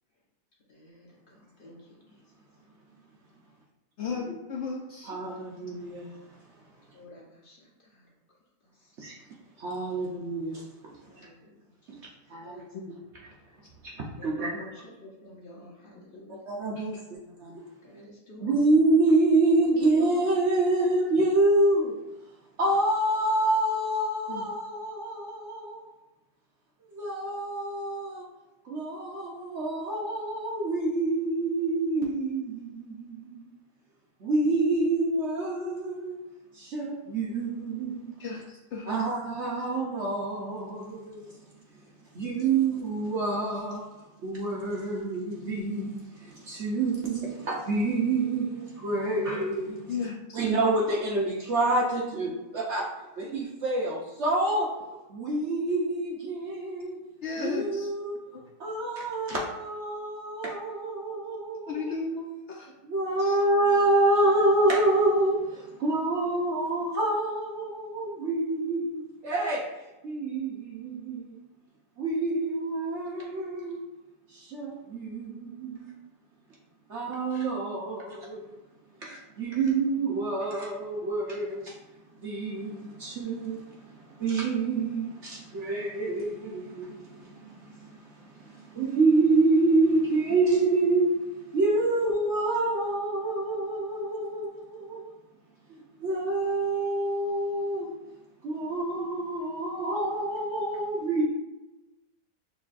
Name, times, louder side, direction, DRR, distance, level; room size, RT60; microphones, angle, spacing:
voice 1, 0.7-1.8 4.0-4.2 6.9-8.0 11.0-11.6 12.4-12.6 14.2-14.7 15.0-16.3 17.8-18.6 19.6-20.2, left 2 dB, 40° left, -4 dB, 0.9 m, -49 dB
voice 2, 4.0-5.2 12.7-12.9 16.1-16.4 16.7-16.8 24.3-24.4 38.2-39.0 49.9-50.4 57.2-57.9 58.3-58.4 61.7-62.7 63.2-63.4, left 4 dB, 80° left, -1 dB, 0.6 m, -35 dB
voice 3, 5.1-6.2 9.0-9.1 9.6-11.3 11.9-12.0 12.3-13.0 13.8-13.9 14.2-14.7 16.5-17.6 18.4-22.0 22.6-25.9 26.9-28.3 28.6-33.5 34.2-36.2 36.5-38.2 38.9-41.3 42.1-43.9 44.2-49.9 50.3-52.9 53.2-57.0 57.4-58.2 58.6-61.9 62.8-71.4 72.0-73.8 74.3-75.9 76.9-78.6 79.0-81.8 82.2-95.1 96.0-97.9 98.4-101.2, right 2 dB, 60° right, -3 dB, 0.7 m, -27 dB
6.4 x 3.0 x 2.4 m, 1.0 s
omnidirectional pair, 1.8 m